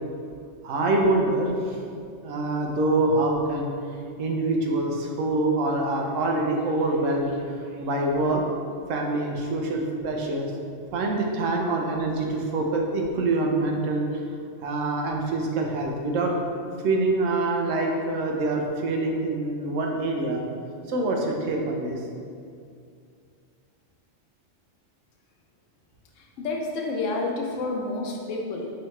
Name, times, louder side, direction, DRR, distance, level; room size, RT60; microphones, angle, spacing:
voice 1, 0.6-1.8 2.2-3.7 4.2-7.3 7.8-8.4 8.9-10.5 10.9-14.1 14.6-16.3 16.8-20.4 20.9-22.0, right 2 dB, 90° right, 1 dB, 1.0 m, -25 dB
voice 2, 26.2-28.7, left 3 dB, 80° left, 0 dB, 1.0 m, -29 dB
4.7 x 3.1 x 3.1 m, 2.3 s
omnidirectional pair, 1.3 m